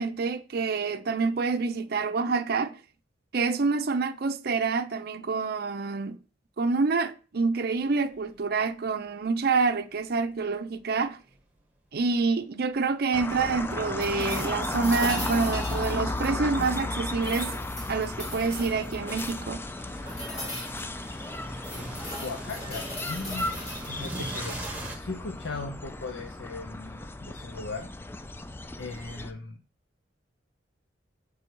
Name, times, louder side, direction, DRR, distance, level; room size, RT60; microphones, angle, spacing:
voice 1, 0.0-2.8 3.3-6.2 6.6-11.2 11.9-17.6 17.9-19.7, right 4 dB, 55° right, 0.5 m, -27 dB
sound 1, 8.1-8.4 8.9-9.0 10.0-11.6 12.3-25.0, right 1 dB, 10° right, 1.3 m, -43 dB
sound 2, 13.1-29.3, left 2 dB, 10° left, 0.3 m, -35 dB
sound 3, 14.0-16.8 17.2-19.5 20.1-20.9 21.3-23.9 24.4-24.8 26.9-27.0, left 1 dB, 35° left, 2.9 m, -39 dB
voice 2, 22.2-23.5 23.9-24.5 25.0-27.9 28.8-29.6, left 3 dB, 80° left, 0.6 m, -38 dB
6.5 x 3.4 x 4.5 m
head